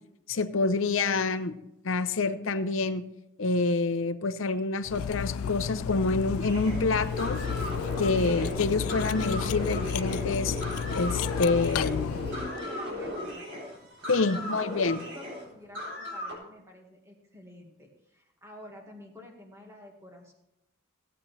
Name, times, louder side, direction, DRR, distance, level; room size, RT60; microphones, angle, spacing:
voice 1, 0.3-1.6 1.8-3.0 3.4-7.4 8.0-10.6 10.9-12.2 14.1-15.0, left 3 dB, 70° left, 11 dB, 0.7 m, -27 dB
Cutlery silverware, 4.8-12.6, left 7 dB, 90° left, 0.3 m, -32 dB
sound 1, 6.4-16.3, left 1 dB, 60° right, 3.7 m, -36 dB
voice 2, 12.2-13.6 13.9-20.3, left 1 dB, 15° right, 1 dB, 1.8 m, -49 dB
16.0 x 8.6 x 3.3 m, 0.87 s
head